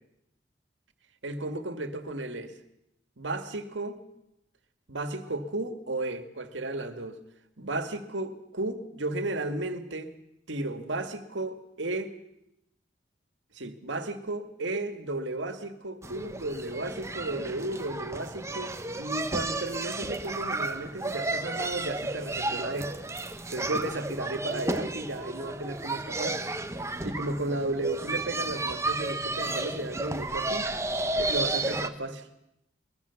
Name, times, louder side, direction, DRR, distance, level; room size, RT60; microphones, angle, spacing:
voice 1, 1.2-2.5 3.2-4.0 4.9-7.2 7.6-10.1 10.5-12.1 13.5-22.9 23.5-26.4 27.0-30.7 31.2-32.3, right 2 dB, 85° right, 2.1 m, -34 dB
sound 1, 16.0-31.9, right 2 dB, 15° right, 1.0 m, -32 dB
22.5 x 21.5 x 7.1 m
head